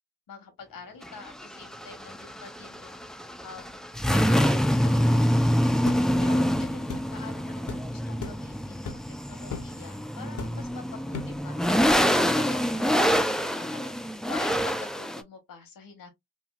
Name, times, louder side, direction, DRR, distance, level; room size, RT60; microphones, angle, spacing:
voice 1, 0.3-3.1 3.4-3.8 4.1-9.0 9.3-16.1, left 5 dB, 75° left, 1.1 m, -46 dB
sound 1, 1.0-15.2, equal, ahead, 0.4 m, -26 dB
sound 2, 5.9-6.1 6.9-7.1 7.7-7.8 8.2-8.4 8.9-9.1 9.5-9.7 10.4-10.7 11.1-11.4, left 6 dB, 60° left, 0.7 m, -37 dB
3.1 x 2.5 x 2.3 m
supercardioid pair, 45°, 34 cm